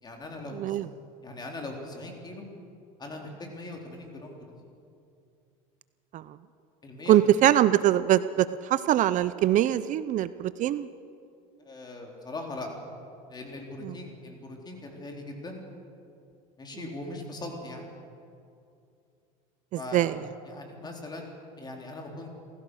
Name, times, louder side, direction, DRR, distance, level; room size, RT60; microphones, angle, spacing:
voice 1, 0.0-0.8 1.2-2.5 3.0-4.5 6.8-7.3 11.6-12.7 13.3-15.6 16.6-17.8 19.8-20.1 20.5-21.3 21.6-22.3, left 2 dB, 25° left, 1 dB, 4.0 m, -40 dB
voice 2, 0.5-0.9 6.1-6.2 7.1-10.9 13.8-13.9 19.9-20.1, right 12 dB, 50° right, 15 dB, 0.6 m, -23 dB
27.5 x 15.5 x 6.5 m, 2.5 s
supercardioid pair, 110°, 17 cm